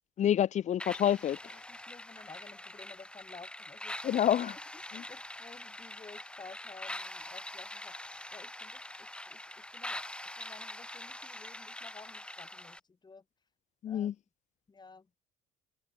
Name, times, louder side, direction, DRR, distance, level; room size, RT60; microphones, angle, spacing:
voice 1, 0.2-1.4 4.0-4.5 4.9-5.0 13.8-14.1, left 10 dB, 40° left, 0.5 m, -27 dB
sound 1, 0.8-12.8, left 1 dB, 5° left, 0.9 m, -44 dB
voice 2, 1.4-10.0 10.4-13.5 13.9-14.1 14.7-15.1, left 4 dB, 20° left, 1.9 m, -53 dB
supercardioid pair, 95°, 19 cm